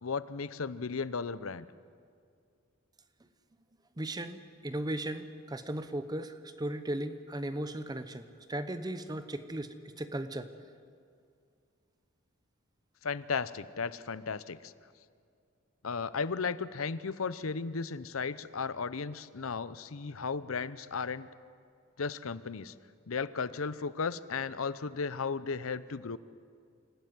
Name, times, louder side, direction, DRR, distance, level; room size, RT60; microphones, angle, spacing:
voice 1, 0.0-1.7 13.0-14.7 15.8-21.3 22.0-22.7 23.1-26.2, left 5 dB, 90° left, 16 dB, 0.8 m, -35 dB
voice 2, 4.0-10.5, right 1 dB, 20° right, 10 dB, 0.9 m, -37 dB
26.5 x 14.5 x 9.6 m, 2.3 s
head